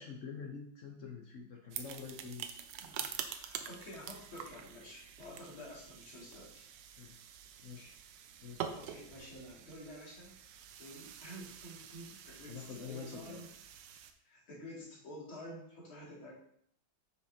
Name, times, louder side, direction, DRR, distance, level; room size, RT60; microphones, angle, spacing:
voice 1, 0.0-2.5 7.0-7.2 7.6-8.0 8.4-8.7 12.5-13.5, left 5 dB, 60° left, 1 dB, 0.8 m, -46 dB
sound 1, 1.7-14.1, right 8 dB, 70° right, 1.2 m, -47 dB
voice 2, 2.8-6.7 8.7-10.4 10.8-13.5 14.2-16.3, equal, 85° left, -6 dB, 3.3 m, -50 dB
8.0 x 5.7 x 2.9 m, 0.65 s
omnidirectional pair, 2.2 m